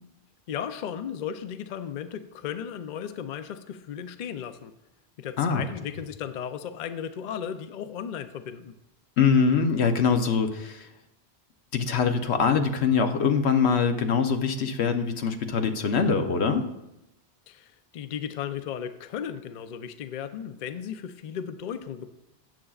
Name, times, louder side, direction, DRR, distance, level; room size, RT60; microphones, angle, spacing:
voice 1, 0.5-4.7 5.2-8.7 17.5-22.1, left 8 dB, 55° left, 10 dB, 0.6 m, -35 dB
voice 2, 9.2-10.9 11.7-16.7, left 6 dB, 85° left, 6 dB, 1.1 m, -23 dB
13.5 x 8.7 x 2.4 m, 0.92 s
omnidirectional pair, 1.1 m